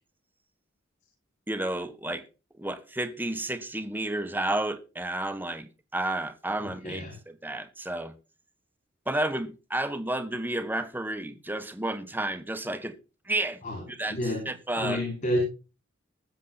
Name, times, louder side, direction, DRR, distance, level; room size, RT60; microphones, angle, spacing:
voice 1, 1.5-2.2 2.6-7.0 7.4-8.1 9.1-12.9 13.3-13.6 13.9-14.2 14.4-15.0, right 1 dB, 10° right, 1.3 m, -31 dB
voice 2, 6.8-7.1 13.6-13.8 14.1-14.5 14.8-15.4, equal, 40° left, 5.1 m, -29 dB
20.5 x 7.3 x 4.0 m
head